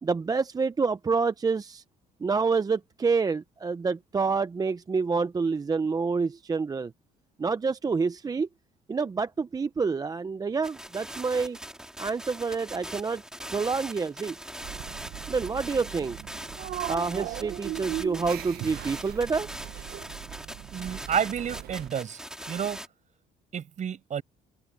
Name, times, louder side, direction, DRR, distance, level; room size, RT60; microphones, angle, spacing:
voice 1, 0.0-1.8 2.2-6.9 7.4-8.5 8.9-11.6 12.0-13.2 13.5-14.4 15.3-16.2 16.9-19.5, right 4 dB, 20° right, 0.6 m, -27 dB
sound 1, 10.6-22.9, right 1 dB, 5° right, 2.3 m, -41 dB
sound 2, 14.6-21.9, right 14 dB, 70° right, 1.1 m, -38 dB
voice 2, 20.7-22.2 22.5-22.8 23.5-24.2, right 8 dB, 45° right, 5.6 m, -30 dB
open air
cardioid pair, 110°, 17 cm